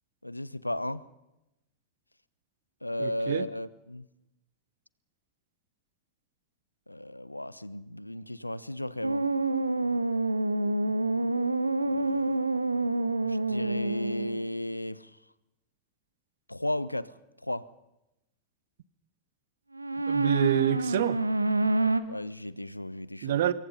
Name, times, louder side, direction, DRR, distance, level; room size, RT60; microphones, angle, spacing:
voice 1, 0.2-1.0 2.8-4.1 6.9-9.3 11.8-12.5 13.2-15.1 16.5-17.2 17.4-17.7 22.1-23.4, left 1 dB, 85° left, 0.8 m, -35 dB
voice 2, 3.0-3.5 20.1-21.2 23.2-23.5, right 11 dB, 55° right, 1.1 m, -26 dB
sound 1, 9.0-14.5 19.7-22.0, right 2 dB, 85° right, 1.1 m, -27 dB
26.0 x 22.5 x 5.6 m
figure-of-eight pair, 90°, 0 cm